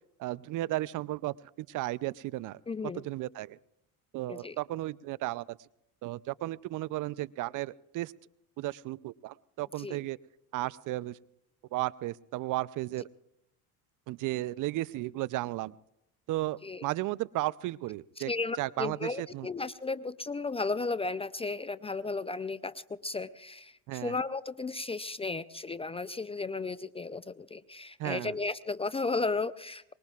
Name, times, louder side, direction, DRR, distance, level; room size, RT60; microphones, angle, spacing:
voice 1, 0.2-2.6 2.9-3.6 4.1-5.6 6.0-8.1 8.6-10.2 10.5-11.2 11.7-13.1 14.1-15.7 16.3-18.3 18.6-19.5 23.9-24.2 28.0-28.4, right 17 dB, 45° right, 19 dB, 0.6 m, -34 dB
voice 2, 2.7-3.0 4.3-4.6 9.8-10.0 16.6-16.8 18.3-29.9, left 3 dB, 15° left, 15 dB, 0.4 m, -34 dB
24.0 x 21.0 x 2.4 m, 0.81 s
hypercardioid pair, 85°, 43 cm